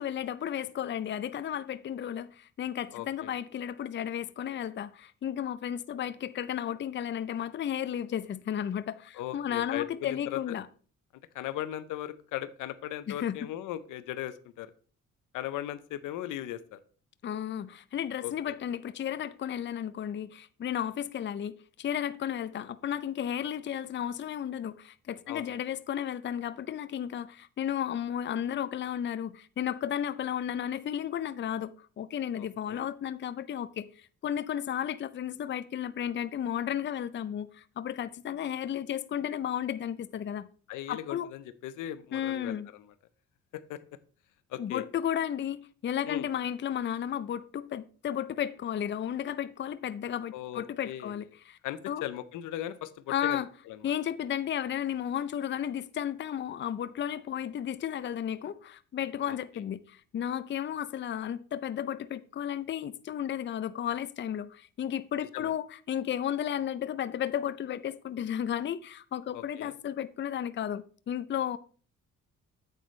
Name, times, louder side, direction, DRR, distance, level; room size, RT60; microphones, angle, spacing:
voice 1, 0.0-10.7 13.1-13.5 17.2-40.5 40.9-41.3 42.1-42.7 44.6-51.6 51.9-52.0 53.1-53.5 53.8-71.6, left 9 dB, 40° left, 0.5 m, -33 dB
voice 2, 2.9-3.3 9.1-10.6 11.3-14.7 15.3-16.8 18.2-18.5 25.3-25.5 32.4-32.8 40.7-42.6 43.5-43.8 44.5-44.8 46.1-46.3 50.3-51.2 51.6-53.4 53.7-53.8 59.3-59.4 65.3-65.5 69.3-69.7, left 12 dB, 90° left, 0.7 m, -38 dB
9.0 x 7.9 x 3.2 m
cardioid pair, 90°, 30 cm